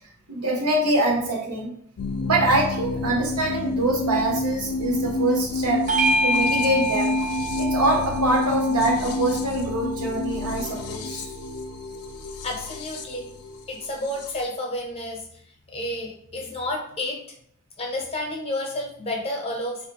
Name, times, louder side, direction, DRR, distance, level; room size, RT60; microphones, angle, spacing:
voice 1, 0.3-1.7 2.2-5.9 6.2-7.2 7.6-11.3, right 2 dB, 80° right, 0 dB, 0.9 m, -24 dB
sound 1, 2.0-14.4, left 3 dB, 85° left, 0.4 m, -29 dB
Bell / Doorbell, 5.9-10.7, right 1 dB, 35° right, 0.3 m, -27 dB
voice 2, 12.4-13.3 13.7-15.2 15.7-17.2 17.8-19.9, left 1 dB, 25° left, 0 dB, 0.6 m, -30 dB
3.8 x 2.4 x 2.8 m, 0.66 s
head